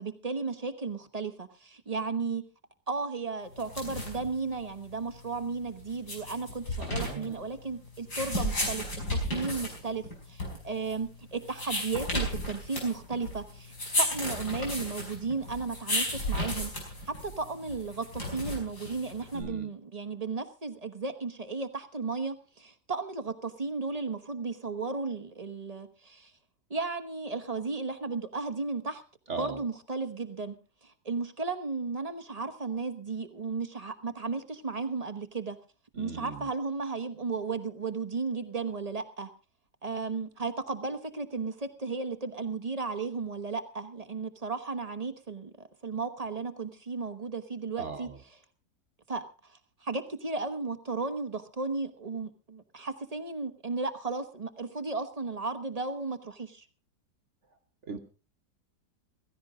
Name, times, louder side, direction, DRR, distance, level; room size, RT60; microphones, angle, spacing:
voice 1, 0.0-2.4 2.9-8.8 9.1-10.0 10.3-26.3 26.7-29.0 29.4-30.5 30.8-35.6 36.0-39.3 39.8-45.5 45.8-48.1 49.1-49.2 49.5-56.6, right 4 dB, 25° right, 8 dB, 1.0 m, -34 dB
sound 1, 3.5-19.4, left 1 dB, 75° left, 5.9 m, -34 dB
voice 2, 6.8-7.5 19.3-19.7 29.3-29.6 35.9-36.5 47.8-48.2 57.8-58.0, right 4 dB, 50° right, 5 dB, 1.5 m, -39 dB
16.0 x 15.5 x 3.7 m, 0.33 s
omnidirectional pair, 1.7 m